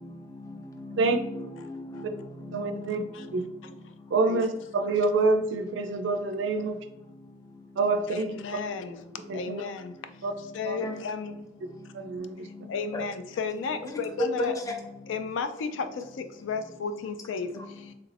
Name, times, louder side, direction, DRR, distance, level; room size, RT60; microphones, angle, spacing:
voice 1, 0.0-3.8 10.8-10.9 12.0-12.7 14.4-14.7 17.5-17.6, left 2 dB, 20° left, 0.4 m, -37 dB
voice 2, 2.5-3.0 3.3-3.4 4.1-6.8 7.8-8.3 9.3-9.6 10.2-10.3 10.7-10.8 11.9-12.5, right 3 dB, 75° right, 0.4 m, -26 dB
voice 3, 8.1-9.0 9.3-9.8 10.6-11.3 12.7-14.5 15.1-15.7 16.5-17.5, left 5 dB, 90° left, 0.3 m, -33 dB
3.3 x 2.4 x 3.2 m
head